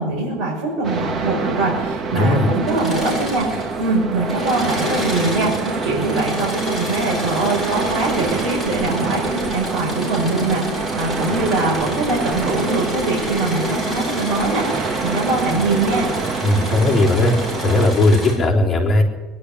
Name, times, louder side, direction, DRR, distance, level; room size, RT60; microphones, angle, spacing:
voice 1, 0.0-16.1, right 2 dB, 45° right, -4 dB, 6.9 m, -22 dB
sound 1, 0.8-17.9, right 4 dB, 30° right, 1.6 m, -26 dB
voice 2, 2.1-2.5 16.4-17.4 17.6-19.0, left 2 dB, 20° left, -4 dB, 3.8 m, -17 dB
Engine / Mechanisms, 2.6-3.9 4.2-18.3, equal, 10° right, 7.9 m, -30 dB
22.5 x 11.5 x 9.9 m, 1.2 s
cardioid pair, 165°, 0 cm